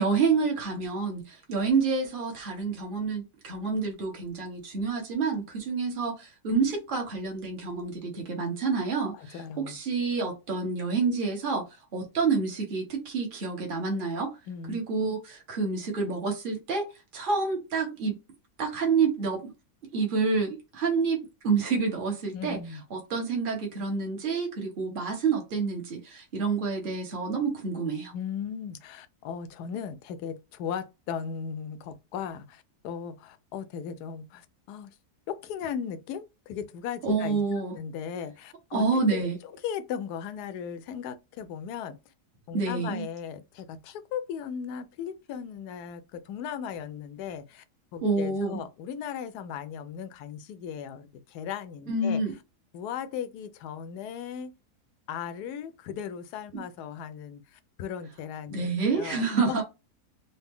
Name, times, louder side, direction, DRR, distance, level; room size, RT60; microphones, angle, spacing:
voice 1, 0.0-11.6 11.9-14.4 14.7-16.9 17.1-18.2 18.6-19.5 19.9-22.6 22.9-28.1 37.0-37.7 38.7-39.4 42.5-43.0 48.0-48.6 51.9-52.3 56.5-56.6 58.5-59.6, right 4 dB, 35° right, 1.2 m, -28 dB
voice 2, 9.2-9.8 14.5-14.8 22.3-22.8 28.1-34.9 35.3-37.4 37.7-38.8 39.1-42.0 42.5-47.6 47.9-52.2 52.7-54.5 55.1-59.6, left 8 dB, 75° left, 1.1 m, -37 dB
4.0 x 2.1 x 3.6 m
omnidirectional pair, 1.8 m